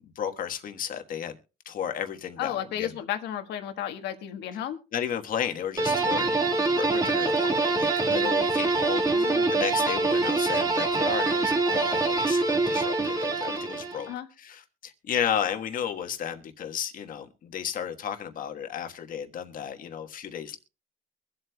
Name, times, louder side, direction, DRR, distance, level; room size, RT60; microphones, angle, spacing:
voice 1, 0.1-1.4 1.6-2.9 4.9-14.1 14.4-20.6, left 8 dB, 55° left, 1.4 m, -33 dB
voice 2, 2.4-4.8 9.1-9.9 14.1-14.3, left 11 dB, 85° left, 1.4 m, -34 dB
sound 1, 5.8-14.1, right 3 dB, 20° right, 1.8 m, -25 dB
23.0 x 7.9 x 2.3 m
cardioid pair, 110°, 17 cm